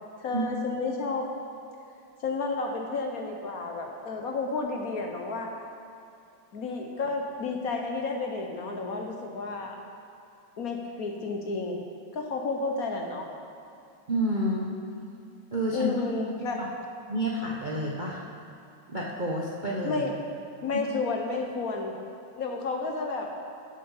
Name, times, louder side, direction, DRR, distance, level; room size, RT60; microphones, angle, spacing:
voice 1, 0.2-1.3 2.2-5.5 6.5-9.8 10.6-11.8 12.1-13.2 15.7-16.6 19.8-20.1 20.6-22.0 22.4-23.3, left 3 dB, 55° left, 2 dB, 1.2 m, -31 dB
voice 2, 14.1-14.7 15.5-16.0 17.1-18.2 18.9-20.0 20.7-20.8, right 1 dB, 40° right, -4 dB, 0.7 m, -29 dB
12.0 x 7.1 x 5.6 m, 2.6 s
omnidirectional pair, 2.1 m